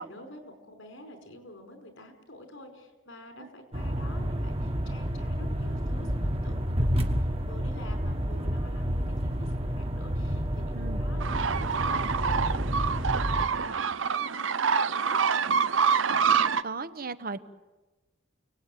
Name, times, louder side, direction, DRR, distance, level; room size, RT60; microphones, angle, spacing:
voice 1, 0.0-15.4, left 1 dB, 90° left, 6 dB, 4.9 m, -48 dB
sound 1, 3.7-13.5, equal, 30° right, 1.6 m, -30 dB
sound 2, 11.2-16.6, right 6 dB, 80° right, 0.8 m, -26 dB
voice 2, 16.6-17.4, right 4 dB, 50° right, 12 dB, 1.1 m, -36 dB
30.0 x 18.5 x 9.3 m, 1.2 s
head